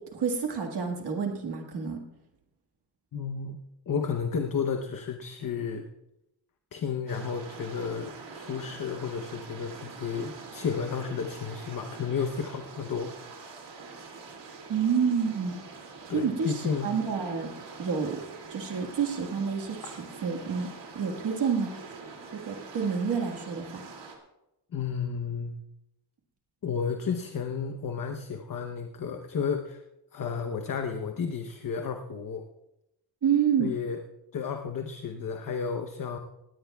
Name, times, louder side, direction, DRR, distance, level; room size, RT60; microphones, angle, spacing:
voice 1, 0.0-2.0 14.7-15.6 16.1-17.5 17.8-18.2 18.5-19.8 20.2-20.7 21.0-21.7 22.3-23.8 33.2-33.7, right 6 dB, 65° right, 2 dB, 1.7 m, -28 dB
voice 2, 3.1-5.8 6.7-13.1 16.1-16.9 24.7-25.6 26.6-29.8 30.1-32.4 33.6-34.0 34.3-36.2, left 6 dB, 50° left, 5 dB, 0.9 m, -32 dB
sound 1, 7.1-24.2, right 4 dB, 80° right, 2.6 m, -44 dB
19.5 x 16.5 x 2.3 m, 0.89 s
wide cardioid pair, 165°, 43 cm